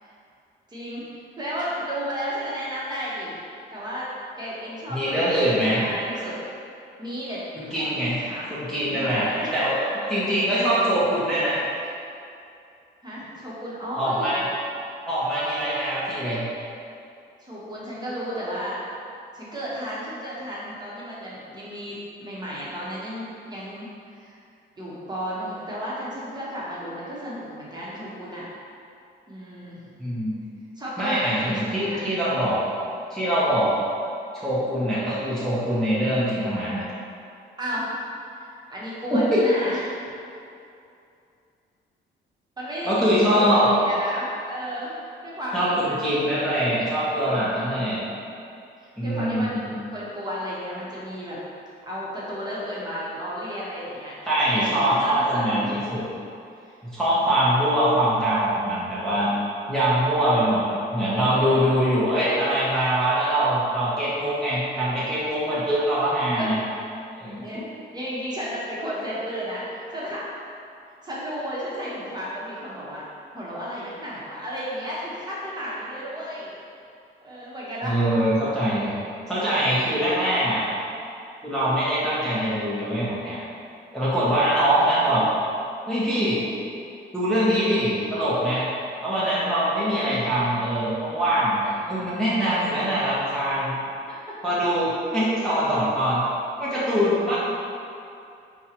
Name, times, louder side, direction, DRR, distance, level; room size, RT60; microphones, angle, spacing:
voice 1, 0.7-1.1 1.4-3.4 3.7-4.1 4.4-6.4 7.0-7.9 8.2-8.5 8.8-9.7 13.0-14.5 17.4-18.8 19.3-24.4 24.8-28.4 29.3-30.0 30.7-32.0 37.6-37.9 38.4-39.9 42.6-44.9 45.2-46.5 47.2-48.1 49.0-51.4 51.8-54.2 54.5-55.7 56.5-56.7 57.2-57.3 61.3-61.7 66.3-66.5 67.4-67.6 67.9-70.2 71.0-73.0 73.3-76.6 77.2-78.0 89.8-90.2 91.6-92.0 93.7-94.4, equal, 20° right, -8 dB, 1.0 m, -33 dB
voice 2, 4.9-5.8 7.5-9.7 10.1-11.6 14.0-14.4 15.1-16.5 30.0-30.4 31.0-32.6 33.1-33.7 34.3-36.8 39.1-39.4 42.9-43.7 45.5-48.0 49.0-49.7 54.3-56.0 56.8-59.3 59.7-66.5 67.2-67.4 77.8-78.9 79.3-80.6 81.4-83.4 83.9-85.2 85.9-86.4 87.1-88.7 89.0-91.6 91.9-93.7 94.4-96.2 96.6-97.4, right 1 dB, ahead, -11 dB, 0.8 m, -23 dB
5.3 x 2.3 x 2.9 m, 2.6 s
cardioid pair, 90°, 20 cm